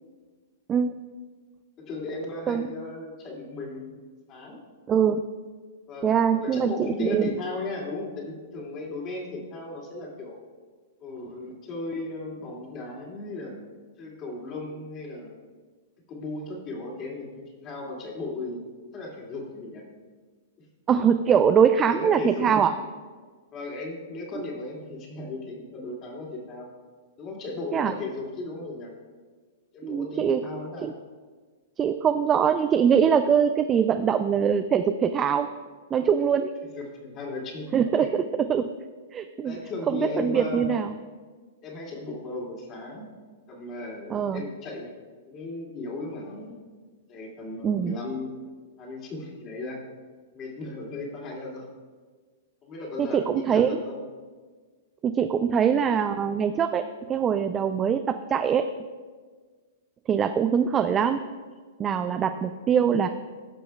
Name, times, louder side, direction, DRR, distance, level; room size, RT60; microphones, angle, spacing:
voice 1, 0.7-1.0 2.5-2.7 4.9-5.2 6.0-7.3 20.9-22.7 27.7-27.9 29.8-30.4 30.8-30.9 31.8-35.5 35.9-36.5 37.7-38.7 39.1-39.6 39.9-41.0 44.1-44.4 47.6-48.0 53.0-53.8 55.0-58.6 60.1-61.2 61.8-63.1, right 7 dB, 25° right, 8 dB, 0.3 m, -23 dB
voice 2, 1.8-3.9 4.3-4.6 5.9-10.4 11.0-13.5 14.0-15.3 16.1-18.6 18.9-19.8 20.6-20.7 21.9-22.6 23.5-26.7 27.2-28.9 29.7-30.9 36.7-37.7 38.0-38.1 39.4-40.7 41.6-43.1 43.5-44.9 45.3-46.5 47.1-48.3 48.8-49.8 50.3-51.7 52.6-54.0, left 2 dB, 35° left, -2 dB, 2.4 m, -36 dB
14.5 x 6.0 x 2.3 m, 1.5 s
hypercardioid pair, 120°, 0 cm